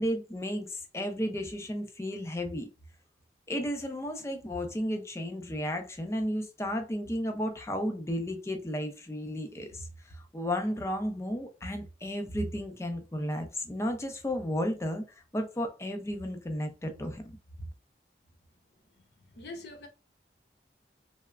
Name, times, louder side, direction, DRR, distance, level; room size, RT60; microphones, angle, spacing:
voice 1, 0.0-2.7 3.5-15.0 15.3-17.2, equal, 15° left, 0.4 m, -33 dB
voice 2, 19.2-19.9, left 2 dB, 70° left, 0.7 m, -44 dB
3.1 x 2.0 x 2.3 m
head